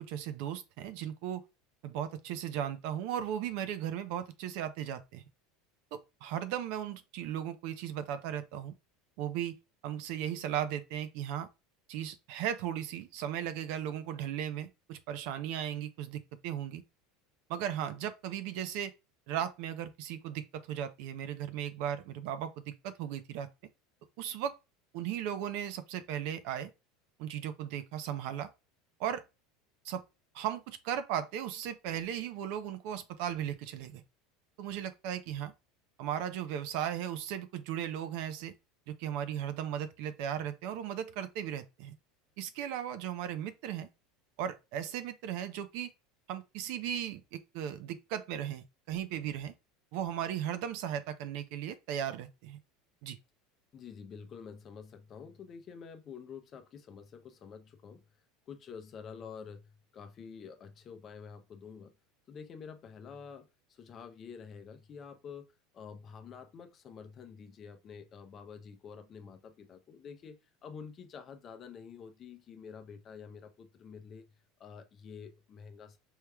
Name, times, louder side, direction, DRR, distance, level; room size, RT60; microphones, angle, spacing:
voice 1, 0.0-1.4 1.8-5.3 5.9-8.7 9.2-9.6 9.8-11.5 11.9-16.8 17.5-18.9 19.3-23.5 24.2-24.5 24.9-26.7 27.2-28.5 29.0-29.2 29.8-30.0 30.3-34.0 34.6-35.5 36.0-38.5 38.9-41.9 42.4-43.9 44.4-45.9 46.3-49.5 49.9-52.6 53.0-53.2, right 10 dB, 60° right, 0.5 m, -36 dB
voice 2, 53.7-58.0 58.5-62.0 62.3-65.5 65.7-74.3 74.6-76.0, left 6 dB, 30° left, 0.6 m, -48 dB
4.5 x 3.4 x 2.2 m
supercardioid pair, 155°, 0 cm